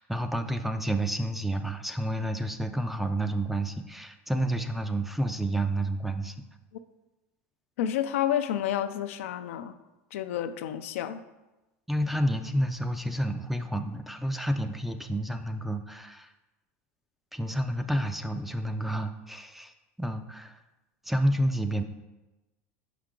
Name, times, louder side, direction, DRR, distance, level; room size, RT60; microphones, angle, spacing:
voice 1, 0.0-6.4 11.9-16.3 17.3-20.6 21.0-21.8, right 1 dB, 5° right, 8 dB, 0.3 m, -30 dB
voice 2, 7.8-9.8 10.1-11.2, left 10 dB, 90° left, 10 dB, 0.4 m, -30 dB
5.6 x 4.9 x 3.7 m, 1.0 s
supercardioid pair, 125°, 7 cm